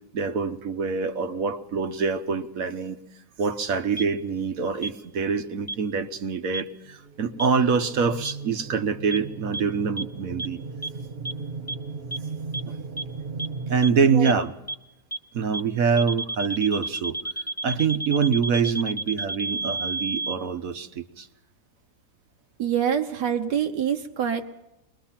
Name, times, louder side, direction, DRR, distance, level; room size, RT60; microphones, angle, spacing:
voice 1, 0.1-3.0 3.4-10.6 13.7-14.5 15.3-17.2 17.6-21.3, right 5 dB, 60° right, 9 dB, 1.3 m, -25 dB
sound 1, 4.0-4.1 4.8-4.9 5.7-5.8 6.5-6.6 7.4-7.5 8.2-8.3 9.1-9.2 9.5-9.6 10.0-10.1 10.4-10.5 10.8-10.9 11.2-11.3 11.7-11.8 12.1-12.2 12.5-12.6 13.0-13.1 13.4-13.5 13.8-13.9 14.2-14.3 14.7-14.8 15.1-15.2 15.5-15.6 16.0-20.4, right 2 dB, 10° left, 0.7 m, -30 dB
sound 2, 6.9-13.8, right 4 dB, 45° right, 0.9 m, -37 dB
voice 2, 22.6-24.5, right 8 dB, 90° right, 4 dB, 1.6 m, -25 dB
22.5 x 21.0 x 5.8 m, 0.94 s
omnidirectional pair, 1.7 m